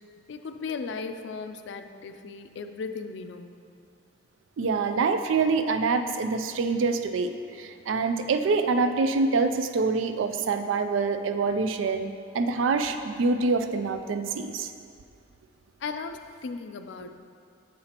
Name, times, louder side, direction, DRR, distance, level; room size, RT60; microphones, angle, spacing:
voice 1, 0.3-3.6 15.8-17.1, left 4 dB, 65° left, 8 dB, 0.4 m, -36 dB
voice 2, 4.6-7.3 7.6-14.7 17.0-17.1, right 4 dB, 90° right, 8 dB, 0.4 m, -25 dB
7.5 x 5.7 x 2.9 m, 2.3 s
head